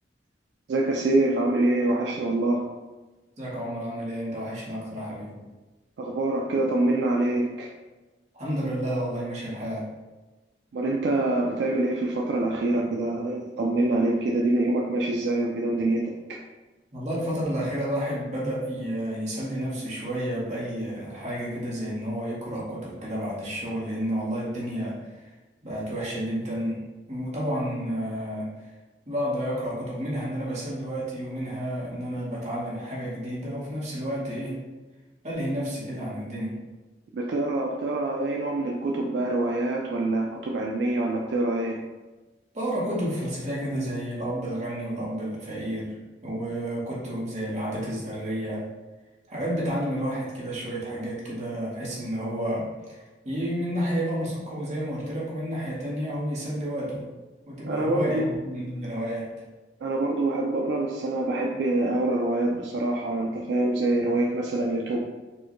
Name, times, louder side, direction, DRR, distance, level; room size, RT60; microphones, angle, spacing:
voice 1, 0.7-2.7 6.0-7.7 10.7-16.4 37.1-41.8 57.6-58.3 59.8-65.0, right 2 dB, 70° right, 0 dB, 0.3 m, -25 dB
voice 2, 3.4-5.4 8.3-9.9 16.9-25.3 25.6-26.8 27.1-28.5 29.1-34.6 35.2-36.5 42.5-46.0 46.2-48.6 49.3-57.0 57.5-59.3, equal, 40° right, -6 dB, 1.0 m, -31 dB
4.5 x 2.2 x 2.9 m, 1.2 s
head